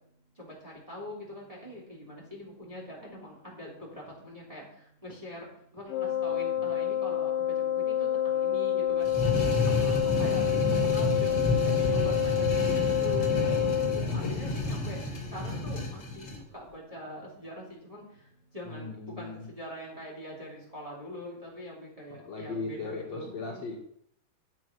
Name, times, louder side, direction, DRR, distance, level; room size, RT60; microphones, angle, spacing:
voice 1, 0.4-5.5 5.7-9.1 9.3-13.7 14.1-15.0 15.3-16.3 16.5-18.0 18.5-23.6, left 1 dB, 10° right, -4 dB, 3.3 m, -43 dB
Wind instrument woodwind instrument, 5.9-14.1, left 10 dB, 85° left, 2.7 m, -28 dB
sound 1, 9.0-16.4, left 2 dB, 30° left, 2.7 m, -30 dB
voice 2, 13.3-14.5 18.6-19.5 22.2-23.8, left 3 dB, 55° left, -1 dB, 2.5 m, -38 dB
10.5 x 7.4 x 6.1 m, 0.68 s
omnidirectional pair, 3.9 m